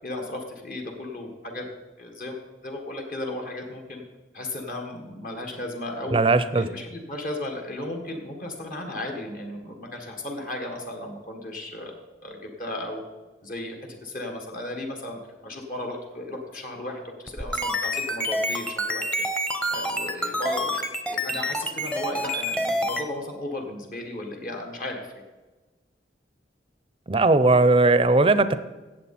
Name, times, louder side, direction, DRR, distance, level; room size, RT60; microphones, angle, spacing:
voice 1, 0.0-1.6 2.0-2.4 2.6-4.0 4.3-6.2 6.5-11.9 12.2-13.0 13.4-13.8 14.0-19.3 19.7-25.0, left 1 dB, 50° left, 2 dB, 1.6 m, -35 dB
voice 2, 6.1-6.7 27.1-28.6, right 3 dB, 30° right, 13 dB, 0.5 m, -18 dB
sound 1, 17.3-23.0, equal, 5° left, 0.8 m, -27 dB
16.0 x 7.7 x 4.3 m, 1.2 s
head